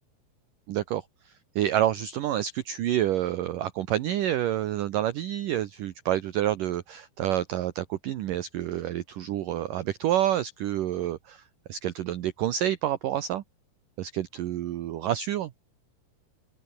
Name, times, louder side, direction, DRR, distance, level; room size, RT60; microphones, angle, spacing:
voice 1, 0.7-11.4 11.7-13.4 14.0-15.5, right 12 dB, 65° right, 2.4 m, -28 dB
open air
omnidirectional pair, 4.8 m